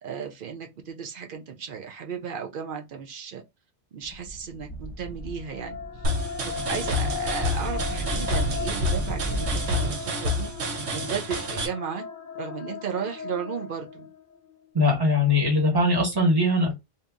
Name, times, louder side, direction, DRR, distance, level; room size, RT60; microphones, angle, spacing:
voice 1, 0.0-3.4 3.9-10.5 10.9-12.0 12.4-14.1, right 7 dB, 60° right, 0.8 m, -35 dB
sound 1, 4.0-9.9, equal, 15° left, 1.2 m, -34 dB
sound 2, 5.3-14.5, left 7 dB, 55° left, 0.6 m, -37 dB
sound 3, 6.0-11.7, left 1 dB, 80° right, 1.1 m, -29 dB
voice 2, 14.7-16.7, left 2 dB, 20° right, 1.4 m, -21 dB
2.8 x 2.7 x 3.5 m
omnidirectional pair, 1.1 m